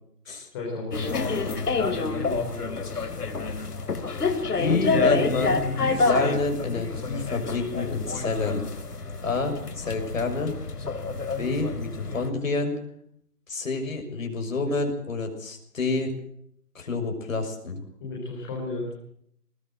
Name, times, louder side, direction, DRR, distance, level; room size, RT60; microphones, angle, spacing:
voice 1, 0.5-2.6 18.0-18.9, left 2 dB, 15° left, -3 dB, 4.2 m, -34 dB
sound 1, 0.9-12.3, left 4 dB, 75° left, 3.7 m, -28 dB
voice 2, 4.5-8.6 9.2-10.5 11.4-12.8 13.5-16.1 16.7-17.8, left 3 dB, 55° left, 4 dB, 6.6 m, -28 dB
20.5 x 19.0 x 7.9 m, 0.68 s
hypercardioid pair, 175°, 47 cm